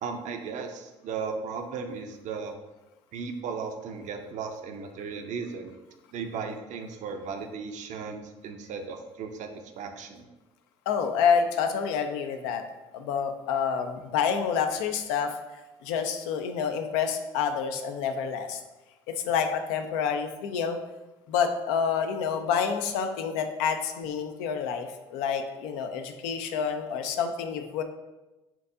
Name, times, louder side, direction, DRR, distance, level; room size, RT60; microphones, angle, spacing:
voice 1, 0.0-2.6 3.1-5.7 6.1-10.3, right 5 dB, 55° right, 6 dB, 0.5 m, -36 dB
voice 2, 10.9-12.6 12.9-15.3 15.8-18.6 19.1-20.8 21.3-27.8, left 7 dB, 75° left, 6 dB, 0.4 m, -28 dB
4.5 x 2.6 x 2.5 m, 1.0 s
hypercardioid pair, 55°, 15 cm